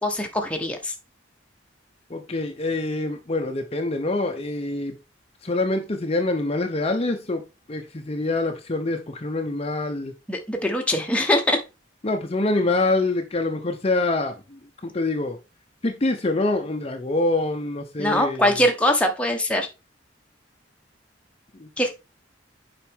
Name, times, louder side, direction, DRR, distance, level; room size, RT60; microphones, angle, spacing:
voice 1, 0.0-0.9 10.3-11.6 18.0-19.7 21.8-21.9, left 1 dB, 5° left, 2 dB, 1.1 m, -22 dB
voice 2, 2.1-4.9 5.4-7.4 7.7-10.1 12.0-14.3 14.8-15.4 15.8-18.6 21.6-21.7, left 2 dB, 30° left, 4 dB, 0.7 m, -25 dB
7.4 x 5.2 x 3.5 m, 0.27 s
head